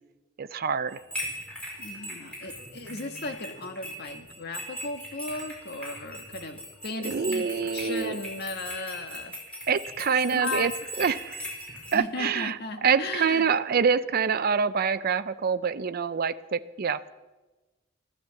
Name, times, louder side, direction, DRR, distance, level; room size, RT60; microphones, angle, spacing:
voice 1, 0.4-1.0 7.0-8.2 9.7-10.7 11.0-11.5 11.9-12.6 12.8-17.1, right 6 dB, 45° right, 12 dB, 0.5 m, -26 dB
sound 1, 0.6-2.0 2.4-5.5 5.8-6.7, equal, 20° right, 3.0 m, -55 dB
sound 2, 0.9-11.9, equal, 5° left, 4.6 m, -39 dB
voice 2, 1.8-9.4 10.3-10.7 11.9-13.5, left 2 dB, 55° left, 6 dB, 1.4 m, -36 dB
14.0 x 12.5 x 7.5 m, 1.2 s
head